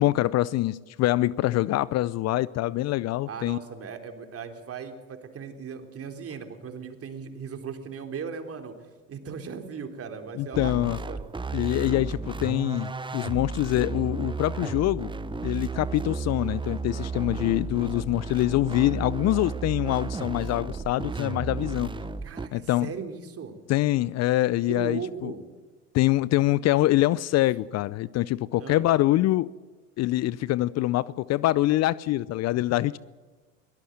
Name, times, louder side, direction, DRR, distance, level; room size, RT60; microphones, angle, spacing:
voice 1, 0.0-3.6 10.4-11.0 11.5-15.1 15.4-21.9 22.5-22.9 23.7-25.3 25.9-29.5 30.0-33.0, left 16 dB, 45° left, 0.6 m, -25 dB
voice 2, 3.3-8.8 9.1-11.2 22.2-23.6 24.7-25.5 28.6-28.9, right 6 dB, 35° right, 3.6 m, -38 dB
sound 1, 10.5-22.5, right 4 dB, 10° right, 1.0 m, -33 dB
23.0 x 18.0 x 8.0 m
hypercardioid pair, 75°, 38 cm